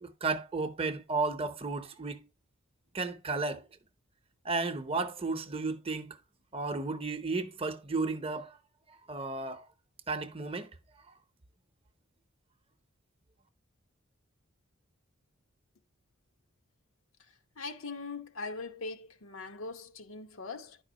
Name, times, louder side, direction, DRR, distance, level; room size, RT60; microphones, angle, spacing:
voice 1, 0.0-2.2 2.9-3.6 4.4-6.2 6.5-8.6 9.1-9.6 10.1-10.7, right 3 dB, 25° right, 0.7 m, -33 dB
voice 2, 17.6-20.8, left 3 dB, 75° left, 1.0 m, -41 dB
11.0 x 4.9 x 2.8 m
head